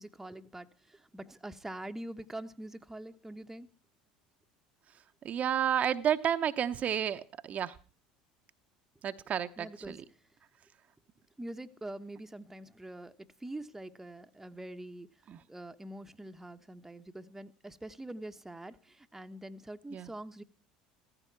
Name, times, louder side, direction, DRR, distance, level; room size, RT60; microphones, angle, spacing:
voice 1, 0.0-3.7 9.6-10.0 11.4-15.1 15.5-20.4, right 1 dB, 10° right, 8 dB, 1.1 m, -44 dB
voice 2, 5.2-7.8 9.0-10.0 15.3-15.4 19.9-20.1, right 9 dB, 40° right, 9 dB, 0.9 m, -31 dB
15.5 x 14.5 x 4.6 m, 0.40 s
hypercardioid pair, 75°, 4 cm